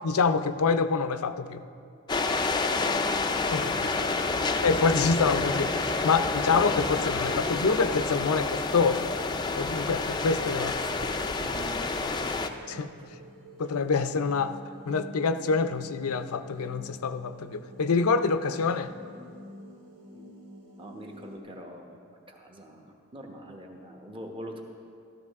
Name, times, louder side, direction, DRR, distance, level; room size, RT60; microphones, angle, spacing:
voice 1, 0.0-1.6 3.5-3.9 4.6-9.1 9.6-10.7 12.7-12.9 13.6-14.6 14.9-18.9, left 4 dB, 85° left, 10 dB, 0.5 m, -26 dB
sound 1, 2.1-12.5, left 3 dB, 20° left, 0.4 m, -29 dB
voice 2, 2.5-3.0 3.5-4.7 6.1-6.2 10.5-12.6 13.0-13.1 20.1-20.3 20.8-22.0 22.3-24.6, equal, 25° right, 2 dB, 1.0 m, -44 dB
sound 2, 2.7-21.4, left 1 dB, 75° right, 1.7 m, -49 dB
13.5 x 13.0 x 3.6 m, 2.4 s
head